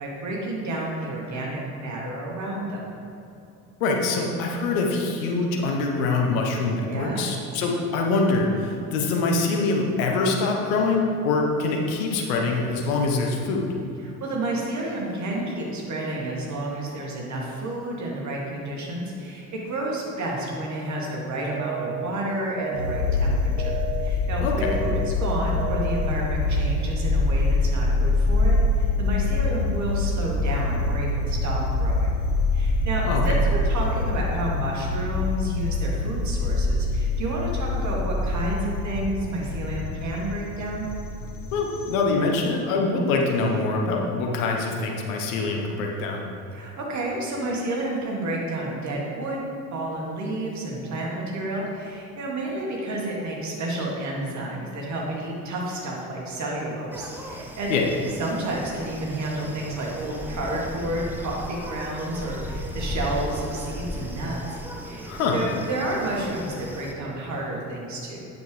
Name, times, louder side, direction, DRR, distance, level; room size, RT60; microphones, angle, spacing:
voice 1, 0.0-2.8 6.9-7.3 14.0-32.1 32.5-40.9 46.5-49.4 49.7-57.7 58.2-68.3, right 1 dB, 35° right, -2 dB, 1.9 m, -30 dB
voice 2, 3.8-13.7 24.4-24.8 33.0-33.3 41.5-46.2 57.7-57.9 65.1-65.4, left 3 dB, 60° left, 1 dB, 1.1 m, -24 dB
sound 1, 21.6-22.1 22.6-23.1 23.6-24.1 24.6-25.1 25.6-26.1, right 11 dB, 55° right, 0.7 m, -32 dB
sound 2, 22.7-41.9, left 2 dB, 85° left, 0.8 m, -25 dB
sound 3, 56.9-66.9, equal, 5° right, 0.5 m, -36 dB
8.9 x 6.7 x 3.3 m, 2.8 s
figure-of-eight pair, 60°, 46 cm